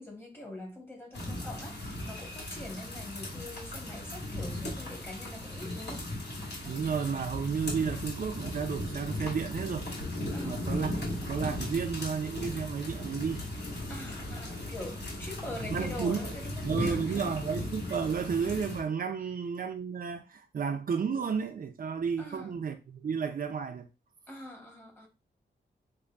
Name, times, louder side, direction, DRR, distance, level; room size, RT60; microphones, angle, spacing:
voice 1, 0.0-6.1 10.3-11.2 13.9-17.4 22.2-22.6 24.3-25.1, left 1 dB, 15° left, 1.2 m, -44 dB
sound 1, 1.1-18.8, left 1 dB, 75° left, 2.2 m, -37 dB
voice 2, 6.6-9.9 10.4-13.4 15.7-16.2 16.6-23.9, right 6 dB, 55° right, 0.5 m, -32 dB
6.6 x 2.6 x 2.4 m
wide cardioid pair, 165°, 18 cm